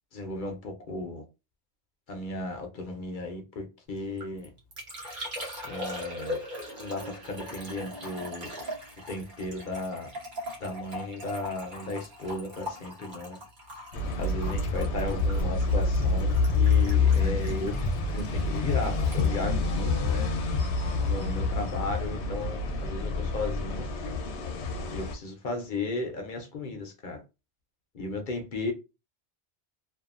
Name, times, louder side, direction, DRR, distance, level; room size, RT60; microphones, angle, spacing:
voice 1, 0.1-1.2 2.1-4.5 5.6-6.4 6.8-8.5 9.1-10.1 10.6-13.4 14.2-17.8 18.1-20.3 21.0-23.9 24.9-27.2 27.9-28.7, left 2 dB, 55° left, 0.7 m, -35 dB
Liquid, 4.0-20.6 20.8-21.4, left 1 dB, 50° right, 0.9 m, -41 dB
sound 1, 13.9-25.1, left 4 dB, 80° left, 0.9 m, -27 dB
2.6 x 2.4 x 2.4 m
omnidirectional pair, 1.1 m